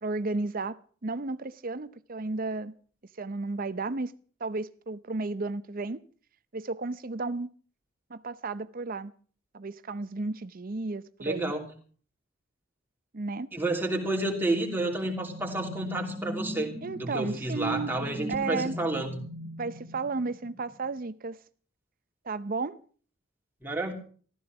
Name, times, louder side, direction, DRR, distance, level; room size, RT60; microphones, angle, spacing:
voice 1, 0.0-2.7 3.2-4.1 4.4-6.0 6.5-7.5 8.1-9.1 9.5-11.5 13.1-13.5 16.8-17.9 18.3-18.8 19.6-21.4 22.2-22.8, right 3 dB, 40° right, 0.6 m, -33 dB
voice 2, 11.2-11.6 13.5-19.2 23.6-23.9, right 2 dB, 10° right, 2.9 m, -30 dB
sound 1, 14.4-20.8, equal, 30° left, 2.2 m, -40 dB
15.0 x 13.5 x 5.9 m
head